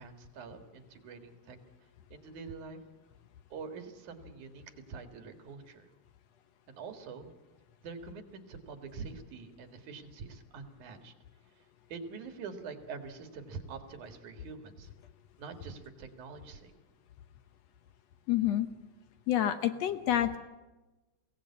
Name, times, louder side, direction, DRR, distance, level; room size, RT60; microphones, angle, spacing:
voice 1, 0.0-1.6 2.1-2.8 3.5-4.6 4.9-5.9 6.7-7.3 7.8-11.1 11.9-14.9 15.4-16.7, right 5 dB, 85° right, 6 dB, 3.3 m, -45 dB
voice 2, 18.3-18.7 19.3-20.4, left 12 dB, 70° left, 10 dB, 1.9 m, -28 dB
22.0 x 17.0 x 8.5 m, 1.1 s
omnidirectional pair, 3.4 m